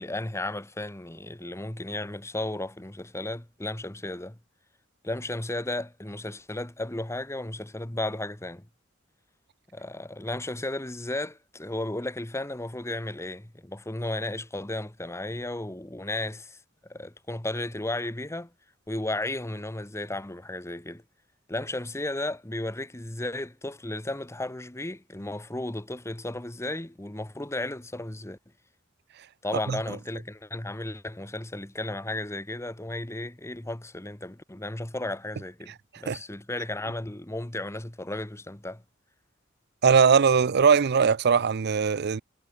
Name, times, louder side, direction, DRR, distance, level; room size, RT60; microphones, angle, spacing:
voice 1, 0.0-4.4 5.0-8.7 9.7-18.5 18.9-21.0 21.5-28.4 29.4-38.8, left 1 dB, 15° left, 1.2 m, -34 dB
voice 2, 39.8-42.2, right 6 dB, 55° right, 0.5 m, -20 dB
head